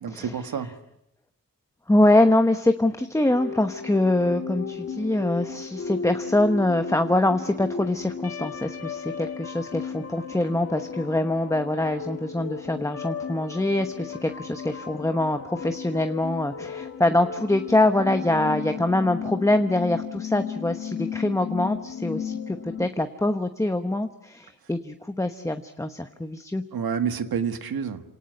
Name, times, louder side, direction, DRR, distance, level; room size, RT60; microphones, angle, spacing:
voice 1, 0.0-0.8 26.7-28.0, right 7 dB, 90° right, 9 dB, 1.8 m, -28 dB
voice 2, 1.9-26.6, left 1 dB, 10° left, 7 dB, 1.0 m, -24 dB
sound 1, 3.3-22.9, left 6 dB, 40° left, 2.2 m, -35 dB
28.0 x 18.5 x 9.5 m, 0.87 s
wide cardioid pair, 130°, 35 cm